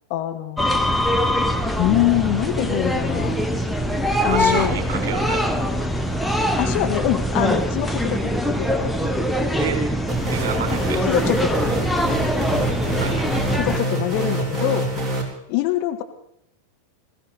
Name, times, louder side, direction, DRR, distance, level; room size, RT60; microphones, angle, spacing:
voice 1, 0.1-0.6 1.8-3.4 4.2-4.8 6.6-9.1 11.1-11.9 13.6-14.9 15.5-16.0, left 13 dB, 45° left, 5 dB, 1.7 m, -24 dB
sound 1, 0.6-13.8, equal, ahead, 1.2 m, -23 dB
voice 2, 4.3-5.7 9.5-9.8 10.2-11.0 13.0-13.6, right 8 dB, 55° right, 4 dB, 4.0 m, -30 dB
sound 2, 10.1-15.2, right 1 dB, 15° right, 3.7 m, -26 dB
20.0 x 15.5 x 4.3 m, 0.76 s
figure-of-eight pair, 90°, 0 cm